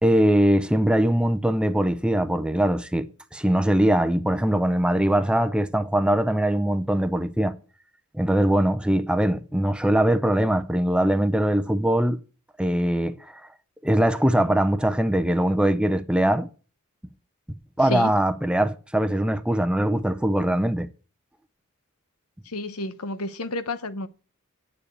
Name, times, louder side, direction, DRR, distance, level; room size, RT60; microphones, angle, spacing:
voice 1, 0.0-3.1 3.3-7.5 8.1-12.2 12.6-13.4 13.8-16.5 17.8-20.9, right 1 dB, 5° right, 0.6 m, -22 dB
voice 2, 22.5-24.1, left 2 dB, 85° left, 1.0 m, -30 dB
8.3 x 7.1 x 8.6 m
head